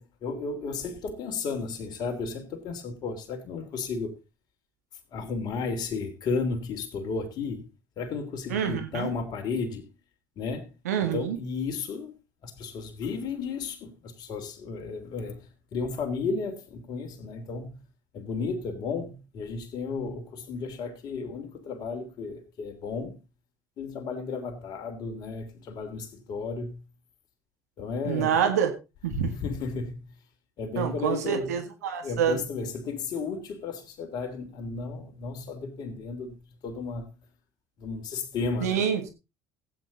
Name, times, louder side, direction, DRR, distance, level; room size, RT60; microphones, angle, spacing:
voice 1, 0.0-4.1 5.1-7.7 8.0-9.9 10.4-10.7 11.1-12.1 12.4-15.4 15.7-17.7 18.1-23.2 23.8-26.8 27.8-28.4 29.2-30.1 30.6-31.6 32.0-37.1 37.8-38.8, left 4 dB, 60° left, 3.2 m, -33 dB
voice 2, 8.5-9.1 10.9-11.4 28.1-28.7 29.0-29.3 30.8-32.4 38.6-39.1, right 8 dB, 85° right, 1.8 m, -27 dB
15.0 x 9.1 x 4.1 m
hypercardioid pair, 60°, 8 cm